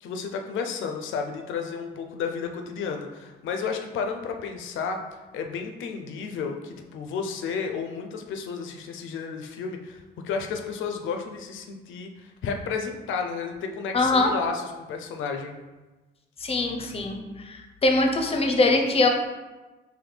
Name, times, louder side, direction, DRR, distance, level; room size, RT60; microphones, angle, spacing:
voice 1, 0.0-5.0 5.3-15.5, left 5 dB, 80° left, 4 dB, 0.5 m, -32 dB
voice 2, 13.9-14.3 16.4-17.2 17.4-19.1, left 2 dB, 30° left, 3 dB, 0.6 m, -22 dB
4.1 x 2.6 x 3.2 m, 1.2 s
cardioid pair, 90°, 20 cm